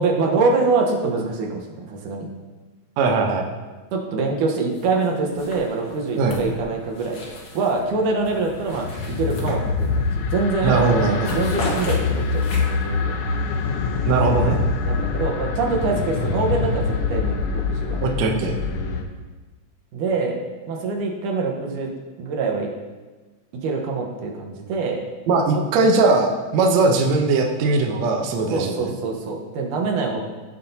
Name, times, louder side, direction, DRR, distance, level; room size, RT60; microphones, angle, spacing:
voice 1, 0.0-2.3 3.9-7.2 7.5-13.2 14.8-18.0 19.9-21.9 22.2-22.7 23.6-25.0 28.5-30.2, right 3 dB, 85° right, 1 dB, 2.7 m, -24 dB
voice 2, 3.0-3.5 6.2-6.4 10.6-11.4 14.1-14.6 18.0-18.5 25.3-28.9, right 3 dB, 70° right, 1 dB, 2.0 m, -19 dB
sound 1, 4.7-5.1 5.4-7.8 8.2-10.1 10.5-10.7 11.0-12.9, left 2 dB, 45° left, 1.8 m, -35 dB
sound 2, 7.3-19.0, left 4 dB, 70° left, 1.6 m, -25 dB
15.5 x 7.5 x 2.8 m, 1.3 s
omnidirectional pair, 3.5 m